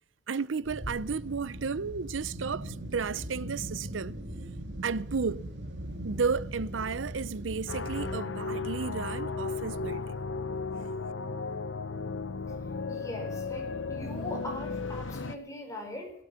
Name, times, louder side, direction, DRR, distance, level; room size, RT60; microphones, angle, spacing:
voice 1, 0.3-4.2 4.8-5.5 6.0-10.2, right 5 dB, 90° right, 0.6 m, -33 dB
sound 1, 0.6-8.1, right 1 dB, 65° right, 2.2 m, -40 dB
sound 2, 7.7-15.4, left 4 dB, 85° left, 1.0 m, -35 dB
voice 2, 12.9-16.1, left 1 dB, 15° left, 4.3 m, -40 dB
16.5 x 13.5 x 5.9 m
head